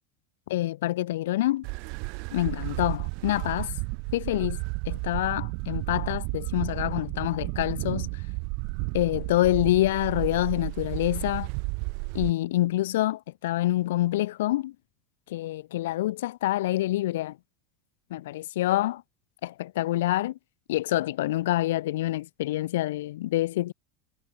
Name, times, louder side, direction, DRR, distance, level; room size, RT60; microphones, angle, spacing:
voice 1, 0.5-1.7 2.3-3.7 4.1-8.2 8.9-11.5 12.1-14.7 15.3-17.4 18.1-19.0 19.4-20.4 20.7-23.7, left 15 dB, 80° left, 0.3 m, -26 dB
sound 1, 1.6-12.3, right 38 dB, 65° right, 0.4 m, -33 dB
hypercardioid pair, 100°, 0 cm